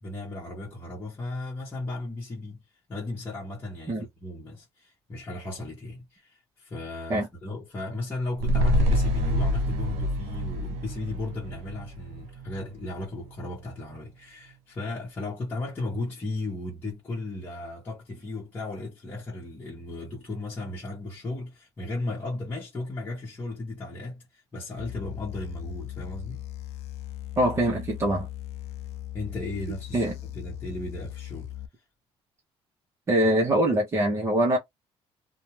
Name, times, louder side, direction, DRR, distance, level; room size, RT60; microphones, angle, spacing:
voice 1, 0.0-2.6 2.9-26.4 29.1-31.5, left 2 dB, 20° left, 1.0 m, -35 dB
sound 1, 8.4-12.9 13.2-13.3, equal, 85° right, 0.7 m, -26 dB
sound 2, 24.8-31.7, left 14 dB, 80° left, 0.4 m, -38 dB
voice 2, 27.4-28.3 29.9-30.1 33.1-34.6, right 1 dB, 25° right, 0.8 m, -23 dB
2.5 x 2.2 x 3.0 m
cardioid pair, 155°, 11 cm